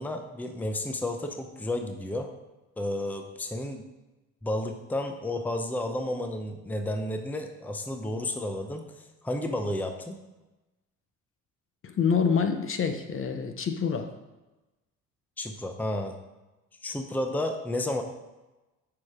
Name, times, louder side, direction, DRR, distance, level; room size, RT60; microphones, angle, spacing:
voice 1, 0.0-2.3 2.8-3.8 4.4-10.2 15.4-16.1 16.8-18.0, left 1 dB, 5° left, 5 dB, 0.7 m, -32 dB
voice 2, 11.8-14.1, left 6 dB, 40° left, 7 dB, 0.8 m, -26 dB
6.9 x 4.9 x 4.8 m, 1.1 s
supercardioid pair, 80°, 34 cm